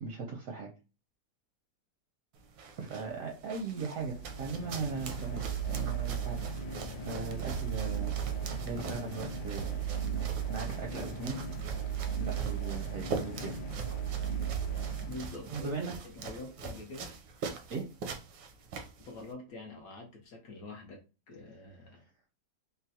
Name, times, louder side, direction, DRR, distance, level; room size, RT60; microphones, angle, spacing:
voice 1, 0.0-0.7 2.8-6.8 7.1-8.2 8.5-11.5 12.2-13.6 15.5-15.9 17.7-17.9, right 4 dB, 70° right, 0.8 m, -39 dB
sound 1, 2.3-19.3, right 4 dB, 85° right, 1.3 m, -43 dB
sound 2, 4.0-15.8, right 7 dB, 90° left, 1.3 m, -36 dB
voice 2, 15.0-17.1 19.0-21.0 21.3-22.0, left 2 dB, 70° left, 0.9 m, -45 dB
3.8 x 2.1 x 2.7 m
omnidirectional pair, 1.9 m